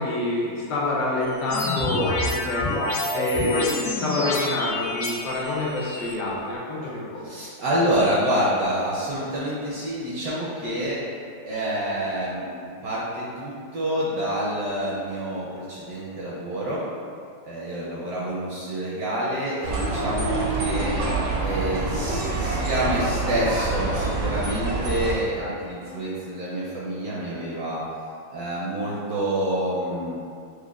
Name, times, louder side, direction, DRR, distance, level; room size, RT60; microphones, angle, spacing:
voice 1, 0.0-2.7 3.1-7.2 20.2-20.4, left 2 dB, 70° left, -5 dB, 1.2 m, -27 dB
sound 1, 1.2-3.9 4.8-6.6, left 1 dB, 15° right, 0.4 m, -43 dB
sound 2, 1.5-5.1, left 2 dB, 85° left, 1.5 m, -26 dB
voice 2, 7.2-11.0 11.4-16.8 17.4-20.9 21.4-27.8 28.3-30.2, right 1 dB, 70° right, -7 dB, 0.9 m, -27 dB
sound 3, 19.6-25.2, right 3 dB, 90° right, 1.3 m, -26 dB
6.2 x 2.1 x 2.3 m, 2.4 s
omnidirectional pair, 2.0 m